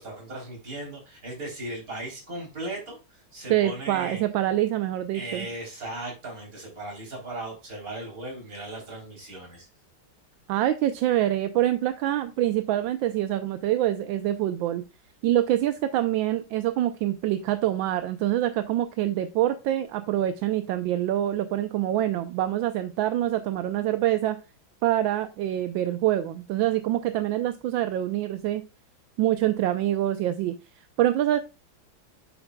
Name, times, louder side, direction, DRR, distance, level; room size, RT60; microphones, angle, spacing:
voice 1, 0.0-4.2 5.1-9.7, right 2 dB, 40° right, 0 dB, 3.8 m, -37 dB
voice 2, 3.5-5.5 10.5-14.8 15.2-24.4 24.8-28.6 29.2-30.5 31.0-31.4, right 13 dB, 75° right, 10 dB, 1.3 m, -25 dB
8.1 x 7.8 x 2.2 m, 0.30 s
omnidirectional pair, 2.2 m